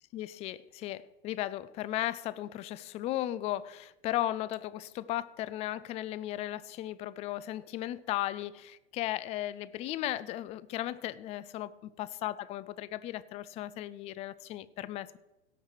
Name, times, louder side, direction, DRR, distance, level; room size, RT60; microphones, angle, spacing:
voice 1, 0.1-15.2, left 14 dB, 20° left, 0.3 m, -36 dB
17.0 x 5.9 x 4.7 m
figure-of-eight pair, 95°, 32 cm